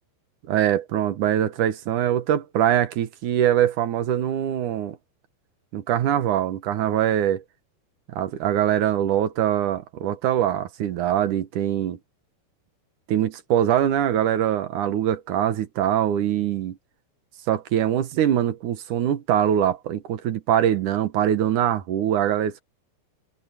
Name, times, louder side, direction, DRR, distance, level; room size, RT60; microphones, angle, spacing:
voice 1, 0.5-5.0 5.7-7.4 8.1-12.0 13.1-16.8 17.5-22.6, right 10 dB, 65° right, 2.1 m, -23 dB
omnidirectional pair, 5.1 m